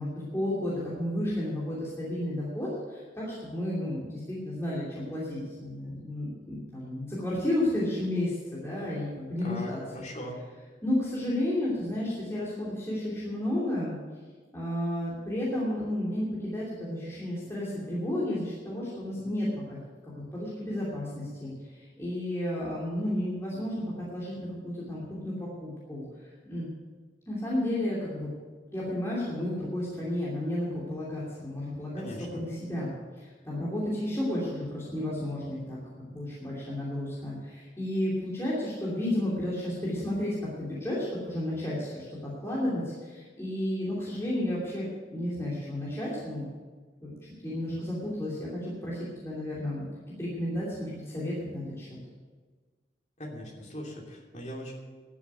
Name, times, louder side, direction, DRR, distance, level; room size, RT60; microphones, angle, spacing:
voice 1, 0.0-9.8 10.8-14.0 14.5-19.8 20.0-26.1 26.4-26.7 27.3-28.3 28.7-32.0 32.3-35.8 36.1-46.4 47.0-47.1 47.4-49.9 50.2-51.9, left 1 dB, 15° left, -8 dB, 2.9 m, -32 dB
voice 2, 9.4-10.4 31.9-32.4 53.2-54.7, equal, 40° left, -1 dB, 2.7 m, -40 dB
12.0 x 7.4 x 9.0 m, 1.4 s
head